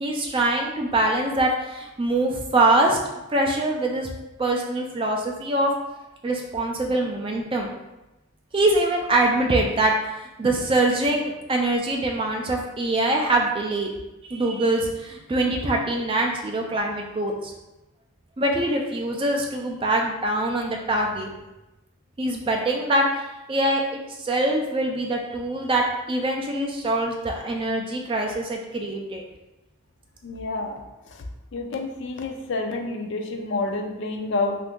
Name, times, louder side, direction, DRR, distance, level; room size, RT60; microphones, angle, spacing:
voice 1, 0.0-3.0 3.3-4.1 4.4-5.7 6.2-7.7 8.5-9.9 10.4-13.9 14.2-17.5 18.4-21.3 22.2-23.2 23.5-23.8 24.2-29.2, right 2 dB, 25° right, 1 dB, 0.3 m, -23 dB
voice 2, 30.2-30.8 31.1-31.2 31.5-34.6, left 3 dB, 55° left, 3 dB, 0.4 m, -28 dB
2.7 x 2.5 x 3.5 m, 1.0 s
head